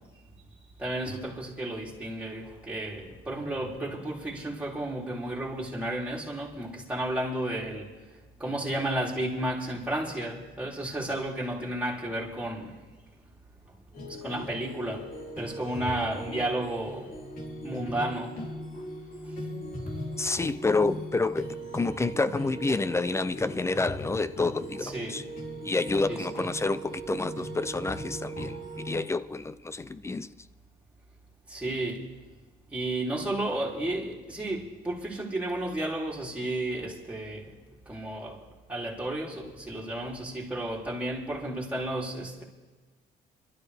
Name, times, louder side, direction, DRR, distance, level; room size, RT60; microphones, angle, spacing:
voice 1, 0.8-7.9 8.4-12.8 14.2-15.1 15.4-17.1 17.6-18.4 24.8-25.3 26.1-26.3 31.5-32.1 32.7-37.5 37.9-38.4 38.7-42.4, right 1 dB, 10° right, 3.6 m, -32 dB
sound 1, 13.9-29.0, right 1 dB, 55° left, 3.6 m, -39 dB
voice 2, 20.2-25.2 25.6-30.3, left 3 dB, 15° left, 0.5 m, -29 dB
28.0 x 12.5 x 3.5 m
cardioid pair, 110°, 17 cm